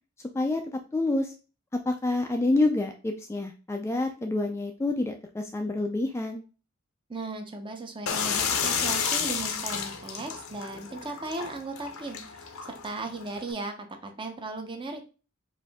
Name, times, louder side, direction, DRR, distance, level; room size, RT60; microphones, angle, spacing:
voice 1, 0.3-1.3 1.7-6.4, left 2 dB, 15° left, 4 dB, 0.3 m, -28 dB
voice 2, 7.1-15.0, right 2 dB, 25° right, 5 dB, 0.7 m, -37 dB
sound 1, 8.1-13.5, left 6 dB, 70° left, 0.7 m, -31 dB
4.8 x 2.6 x 3.5 m, 0.34 s
head